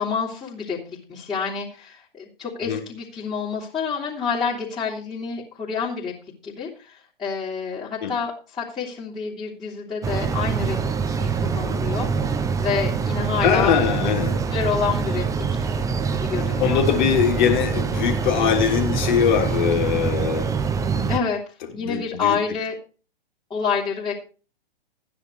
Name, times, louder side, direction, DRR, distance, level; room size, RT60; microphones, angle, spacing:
voice 1, 0.0-6.1 6.4-10.8 11.1-12.3 12.6-13.8 14.5-15.2 15.5-15.7 16.0-16.8 21.1-21.4 21.7-22.7 23.5-24.2, left 6 dB, 15° left, -7 dB, 3.2 m, -28 dB
sound 1, 10.0-21.2, right 5 dB, 10° right, 0.9 m, -24 dB
voice 2, 13.4-14.3 16.6-20.6 21.8-22.4, left 8 dB, 50° left, 3 dB, 3.3 m, -21 dB
13.5 x 9.7 x 4.7 m, 0.37 s
hypercardioid pair, 120°, 29 cm